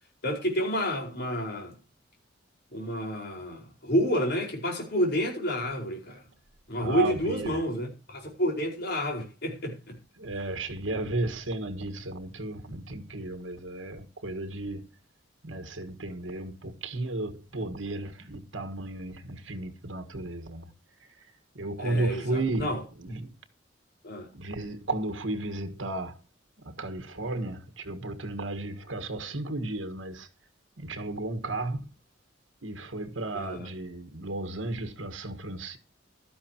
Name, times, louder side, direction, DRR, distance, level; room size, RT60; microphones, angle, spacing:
voice 1, 0.2-1.7 2.7-6.2 6.7-10.0 21.8-22.8 24.0-24.3 33.3-33.7, equal, 60° left, 4.8 m, -29 dB
voice 2, 6.8-7.6 10.2-14.9 15.4-20.7 21.0-23.3 24.3-26.2 26.6-30.3 30.8-31.8 32.6-35.8, right 2 dB, 80° right, 1.6 m, -34 dB
16.0 x 12.5 x 2.9 m
head